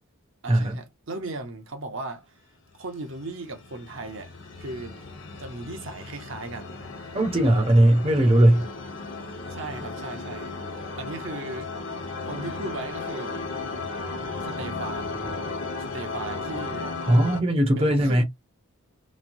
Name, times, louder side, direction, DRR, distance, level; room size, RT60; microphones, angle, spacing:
voice 1, 0.4-2.3 2.8-4.3 4.6-5.1 5.4-6.7 7.5-7.7 9.5-10.6 11.0-11.7 12.2-13.3 14.4-15.2 15.8-16.9 17.8-18.2, right 2 dB, 60° right, 0.8 m, -36 dB
sound 1, 3.0-17.4, left 3 dB, 60° left, 0.9 m, -35 dB
voice 2, 7.1-8.7 17.1-18.2, right 1 dB, 25° right, 0.7 m, -19 dB
3.0 x 2.2 x 2.6 m
head